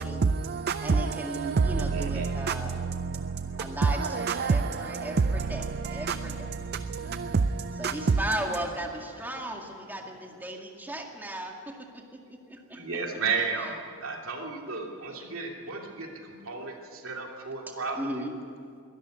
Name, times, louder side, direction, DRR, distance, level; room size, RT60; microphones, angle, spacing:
voice 1, 0.0-8.7 9.1-9.3, right 4 dB, 50° right, 0.5 m, -28 dB
voice 2, 0.8-2.8 3.6-5.6 5.9-6.3 7.8-12.0 12.5-12.8 18.0-18.3, right 1 dB, 10° right, 1.9 m, -36 dB
voice 3, 1.9-2.3 12.7-18.2, right 4 dB, 65° right, 3.0 m, -34 dB
22.0 x 13.5 x 9.4 m
head